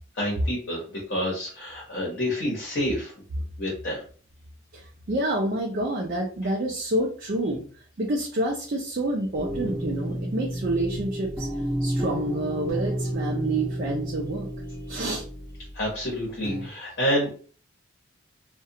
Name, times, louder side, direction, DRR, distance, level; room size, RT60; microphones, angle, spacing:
voice 1, 0.1-0.8 1.1-3.1 3.6-4.0 15.7-17.3, equal, 50° left, -3 dB, 0.9 m, -28 dB
voice 2, 4.7-7.6 8.0-11.5 11.8-14.5 14.9-15.2, right 1 dB, 45° right, -1 dB, 0.4 m, -28 dB
sound 1, 9.4-16.7, equal, 10° right, 1.1 m, -31 dB
2.4 x 2.2 x 2.7 m, 0.41 s
head